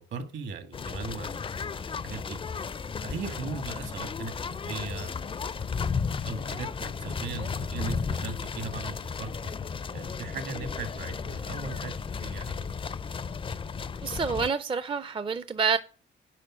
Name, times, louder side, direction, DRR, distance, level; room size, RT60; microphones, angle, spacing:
voice 1, 0.1-2.4 3.0-5.8 6.2-9.3 9.9-12.7, right 4 dB, 65° right, 1.7 m, -39 dB
sound 1, 0.7-14.5, left 5 dB, 25° left, 0.4 m, -34 dB
voice 2, 14.0-15.8, right 5 dB, 25° right, 0.5 m, -28 dB
10.0 x 4.1 x 6.2 m
cardioid pair, 90°, 20 cm